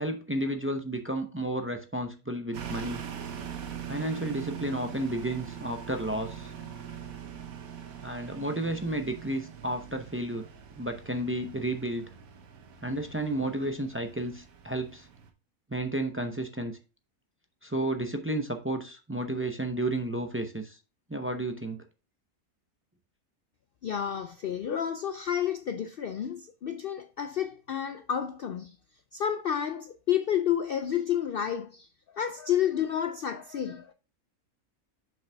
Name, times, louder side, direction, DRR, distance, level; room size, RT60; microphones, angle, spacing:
voice 1, 0.0-3.0 3.9-6.5 8.0-10.5 10.7-12.0 12.8-15.1 15.7-16.8 17.6-20.8 21.1-21.8, right 1 dB, 20° right, 0.3 m, -32 dB
sound 1, 2.5-15.3, right 8 dB, 75° right, 1.3 m, -42 dB
voice 2, 23.8-28.8 29.1-31.9 32.1-33.9, left 9 dB, 80° left, 0.5 m, -30 dB
7.0 x 5.5 x 3.4 m
omnidirectional pair, 1.5 m